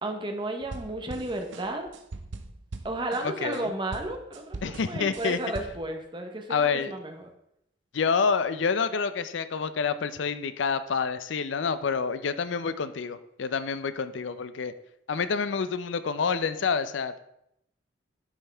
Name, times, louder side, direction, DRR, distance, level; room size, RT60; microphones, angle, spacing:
voice 1, 0.0-1.9 2.8-7.3, right 2 dB, 25° right, 4 dB, 0.9 m, -33 dB
sound 1, 0.6-3.6 3.9-5.9, right 3 dB, 75° right, 0.7 m, -41 dB
voice 2, 3.2-3.7 4.6-5.4 6.5-6.9 7.9-14.7 15.1-17.2, left 5 dB, 70° left, 13 dB, 0.5 m, -28 dB
9.8 x 5.4 x 3.4 m, 0.78 s
head